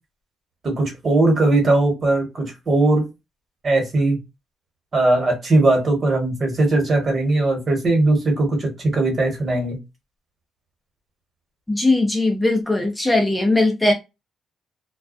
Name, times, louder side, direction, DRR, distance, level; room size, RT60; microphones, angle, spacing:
voice 1, 0.6-3.1 3.6-4.2 4.9-9.8, right 2 dB, 40° right, 1.3 m, -19 dB
voice 2, 11.7-13.9, left 2 dB, 10° left, 0.5 m, -19 dB
2.3 x 2.3 x 2.4 m
cardioid pair, 90°, 0 cm